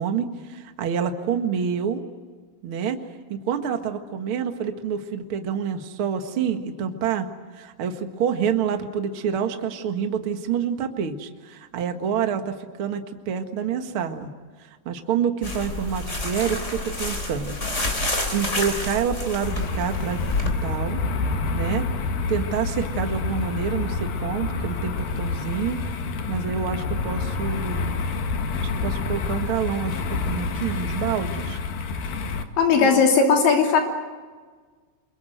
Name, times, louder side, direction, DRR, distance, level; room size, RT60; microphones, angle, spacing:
voice 1, 0.0-2.0 2.6-3.0 3.3-7.3 7.5-14.3 14.8-17.5 18.3-21.0 21.5-21.9 22.3-25.8 26.3-27.9 28.8-31.6 32.8-33.0, right 7 dB, 75° right, 6 dB, 1.2 m, -27 dB
sound 1, 15.4-20.5, left 2 dB, 15° left, 3.5 m, -29 dB
sound 2, 19.4-32.4, left 4 dB, 60° left, 3.0 m, -28 dB
voice 2, 32.6-33.8, left 5 dB, 75° left, 1 dB, 5.4 m, -17 dB
28.5 x 23.5 x 7.9 m, 1.5 s
omnidirectional pair, 5.3 m